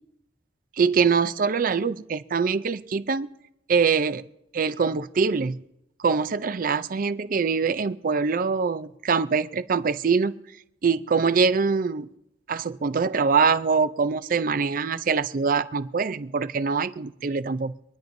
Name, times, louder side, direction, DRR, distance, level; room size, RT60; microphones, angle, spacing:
voice 1, 0.8-3.3 3.7-4.2 4.5-5.6 6.0-10.3 10.8-12.1 12.5-17.7, right 5 dB, 50° right, 13 dB, 0.5 m, -23 dB
26.0 x 10.5 x 2.6 m, 0.85 s
head